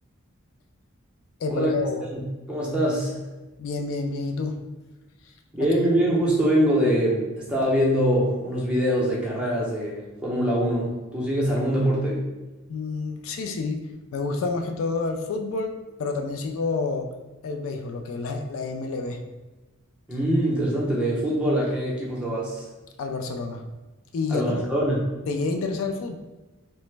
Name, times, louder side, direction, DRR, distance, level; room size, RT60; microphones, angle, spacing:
voice 1, 1.4-2.0 3.6-4.6 12.7-15.7 16.0-17.1 17.4-19.2 23.0-23.6 24.1-24.6 25.3-26.2, left 3 dB, 70° left, 5 dB, 0.3 m, -29 dB
voice 2, 2.5-3.1 5.5-12.2 20.1-22.7 24.3-25.0, equal, 5° right, -5 dB, 0.6 m, -23 dB
3.1 x 2.0 x 3.2 m, 1.1 s
head